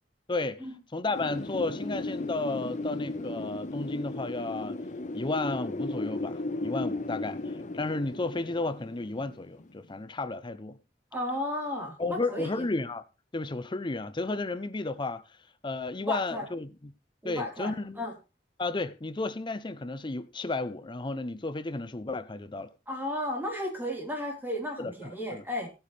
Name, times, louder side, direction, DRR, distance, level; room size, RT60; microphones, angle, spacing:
voice 1, 0.3-0.7 0.9-4.8 5.1-10.8 12.0-13.0 13.3-15.4 15.6-16.9 17.2-18.0 18.6-22.7 24.8-25.4, left 3 dB, 30° left, 0.6 m, -33 dB
Wind, 1.1-9.9, left 2 dB, 45° left, 1.0 m, -35 dB
voice 2, 11.1-12.5 16.1-16.4 17.2-18.1 22.9-25.7, left 1 dB, 10° right, 4.0 m, -34 dB
16.0 x 8.8 x 3.3 m
head